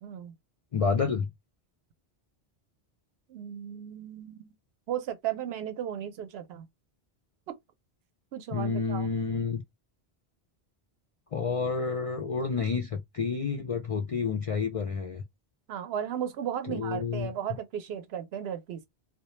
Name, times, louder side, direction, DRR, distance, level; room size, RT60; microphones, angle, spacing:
voice 1, 0.0-0.3 3.3-4.5 4.9-6.7 7.5-7.6 8.3-9.1 15.7-18.9, right 10 dB, 75° right, 0.8 m, -35 dB
voice 2, 0.7-1.3 8.5-9.6 11.3-15.2 16.7-17.3, left 5 dB, 60° left, 0.3 m, -29 dB
2.3 x 2.1 x 2.9 m
omnidirectional pair, 1.1 m